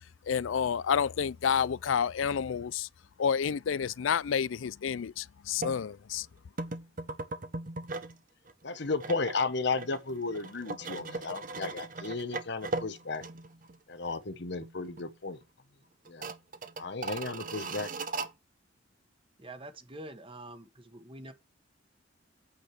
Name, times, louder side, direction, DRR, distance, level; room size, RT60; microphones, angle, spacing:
voice 1, 0.3-2.9 3.2-6.3, left 7 dB, 85° left, 0.4 m, -29 dB
sound 1, 5.6-5.8 6.6-8.2 8.5-13.8 14.1-14.2 14.6-15.1 15.4-15.5 16.0-18.3, right 3 dB, 45° right, 1.1 m, -38 dB
voice 2, 8.6-13.2 13.9-15.4 16.1-16.3 16.8-17.9, left 3 dB, 60° left, 1.1 m, -34 dB
voice 3, 19.4-21.3, right 1 dB, 30° right, 1.4 m, -46 dB
8.8 x 5.0 x 6.0 m
head